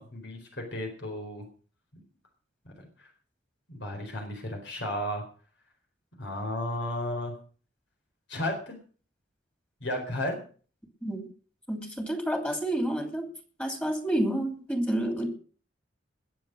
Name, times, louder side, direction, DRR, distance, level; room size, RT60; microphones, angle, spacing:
voice 1, 0.0-1.5 2.6-3.1 3.7-5.2 6.2-7.3 8.3-8.8 9.8-10.4, left 1 dB, 65° left, 4.3 m, -34 dB
voice 2, 11.7-13.3 13.6-15.3, right 1 dB, 5° left, 2.8 m, -29 dB
20.5 x 7.6 x 6.3 m
head